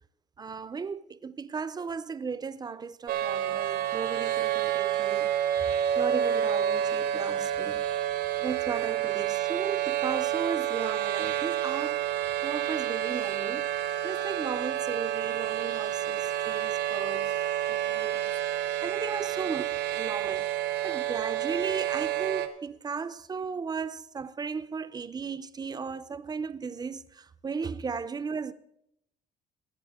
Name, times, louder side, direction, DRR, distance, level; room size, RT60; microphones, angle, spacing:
voice 1, 0.4-5.3 5.6-7.9 8.4-12.0 12.4-17.4 17.7-28.5, right 5 dB, 25° right, 0.6 m, -36 dB
sound 1, 3.1-22.5, right 11 dB, 85° right, 1.4 m, -29 dB
20.5 x 8.7 x 3.6 m
cardioid pair, 110°, 17 cm